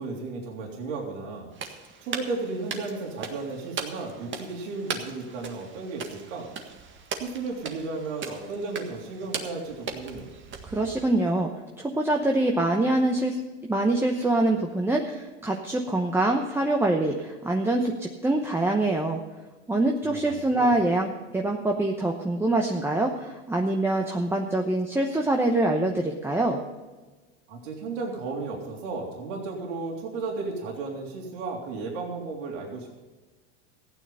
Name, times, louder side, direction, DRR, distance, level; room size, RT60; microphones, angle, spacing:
voice 1, 0.0-1.5 2.0-6.5 7.2-10.3 20.1-20.7 27.5-33.0, right 3 dB, 75° right, -1 dB, 3.4 m, -34 dB
sound 1, 1.5-11.3, right 5 dB, 30° right, 1.7 m, -39 dB
voice 2, 10.7-11.5 11.8-19.2 19.7-26.6, right 2 dB, 5° right, 1 dB, 0.9 m, -25 dB
15.0 x 9.4 x 5.6 m, 1.3 s
supercardioid pair, 120°, 37 cm